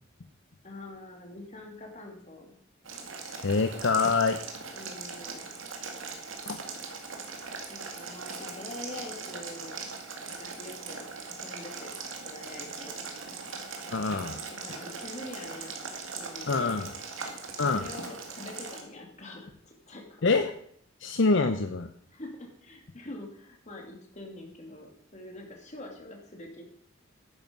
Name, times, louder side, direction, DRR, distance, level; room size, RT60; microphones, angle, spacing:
voice 1, 0.6-2.6 3.0-3.2 3.6-3.7 4.7-5.5 7.7-9.8 10.4-11.9 12.2-13.0 14.5-15.8 16.0-16.8 17.6-20.3 22.1-26.7, left 2 dB, 35° left, 1 dB, 2.8 m, -45 dB
Boiling, 2.8-18.8, right 4 dB, 75° right, 2.3 m, -40 dB
voice 2, 3.4-4.4 6.5-6.6 13.9-14.4 16.5-16.9 17.6-17.8 20.2-20.5 21.0-21.9, left 4 dB, 65° left, 7 dB, 0.7 m, -25 dB
11.0 x 9.4 x 5.3 m, 0.65 s
head